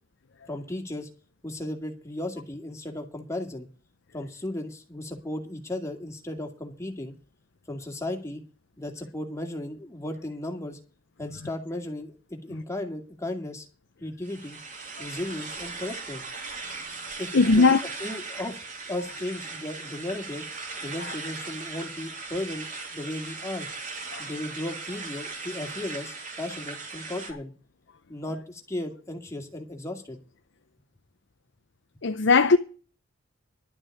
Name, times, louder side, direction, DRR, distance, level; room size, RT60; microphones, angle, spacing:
voice 1, 0.5-1.1 1.4-3.7 4.1-7.1 7.7-8.4 8.8-10.8 11.2-13.7 14.0-14.6 15.0-16.2 17.2-17.7 18.0-18.6 18.9-20.5 20.8-22.7 22.9-23.7 24.2-27.5 28.1-30.2, left 1 dB, 15° left, 2.3 m, -35 dB
sound 1, 14.2-27.3, right 4 dB, 40° right, 3.0 m, -38 dB
voice 2, 17.3-17.8 24.1-24.2 32.0-32.6, left 4 dB, 60° left, 0.7 m, -18 dB
12.0 x 6.3 x 9.0 m
head